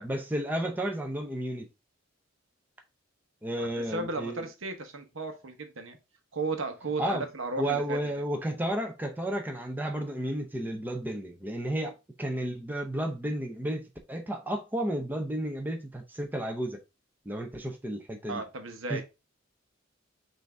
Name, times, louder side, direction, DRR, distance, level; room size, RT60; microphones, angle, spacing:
voice 1, 0.0-1.7 3.4-4.4 7.0-7.2 7.6-16.8 17.3-18.4 18.9-19.0, right 1 dB, 10° right, 0.6 m, -32 dB
voice 2, 3.6-6.0 6.3-8.0 18.3-19.0, right 3 dB, 75° right, 0.9 m, -35 dB
5.9 x 2.7 x 3.2 m
head